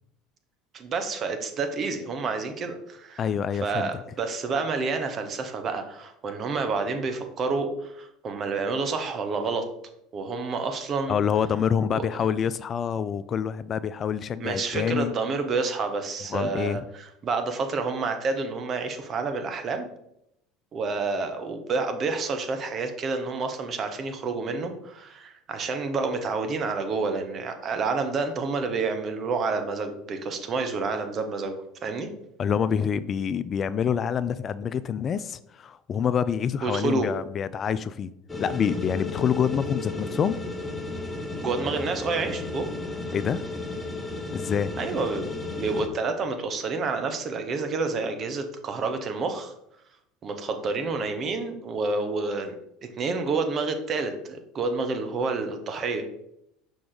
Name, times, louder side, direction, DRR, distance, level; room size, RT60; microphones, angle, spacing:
voice 1, 0.7-3.2 3.6-9.7 10.1-11.2 11.9-12.1 14.4-19.9 20.7-32.1 36.6-37.1 41.4-42.7 44.8-45.3 45.6-49.5 50.2-56.1, right 4 dB, 40° right, 6 dB, 1.1 m, -29 dB
voice 2, 3.2-3.9 11.1-15.1 16.3-16.8 32.4-38.1 38.4-40.4 43.1-43.4 44.3-44.7, left 7 dB, 40° left, 15 dB, 0.3 m, -26 dB
sound 1, 38.3-45.9, left 2 dB, 10° left, 1.0 m, -33 dB
5.7 x 5.1 x 3.9 m, 0.79 s
hypercardioid pair, 80°, 0 cm